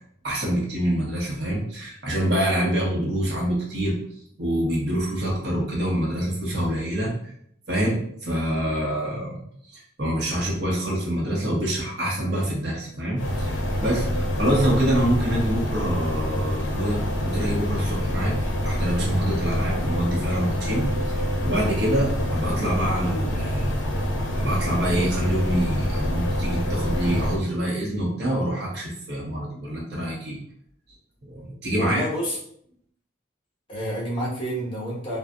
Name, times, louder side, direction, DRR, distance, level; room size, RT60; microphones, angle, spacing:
voice 1, 0.2-4.0 4.4-7.1 7.7-9.4 9.7-18.3 18.6-23.8 24.3-30.4 31.3-32.0, right 1 dB, 60° right, -3 dB, 1.0 m, -26 dB
sound 1, 13.2-27.4, equal, 70° left, 0.6 m, -26 dB
voice 2, 31.8-32.4 33.7-35.2, equal, 25° left, -6 dB, 1.0 m, -28 dB
3.7 x 2.3 x 2.2 m, 0.66 s
head